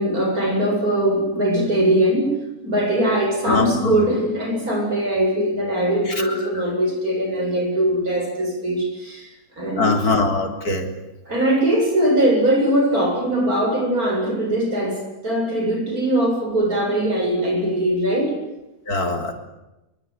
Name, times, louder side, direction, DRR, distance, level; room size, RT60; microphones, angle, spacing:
voice 1, 0.0-2.3 2.6-9.3 9.6-10.1 11.3-18.3, right 1 dB, 70° right, 3 dB, 8.4 m, -21 dB
voice 2, 3.4-3.9 6.2-6.3 9.8-10.9 18.9-19.3, left 3 dB, 80° left, 3 dB, 4.3 m, -21 dB
24.5 x 24.0 x 9.5 m, 0.97 s
omnidirectional pair, 1.6 m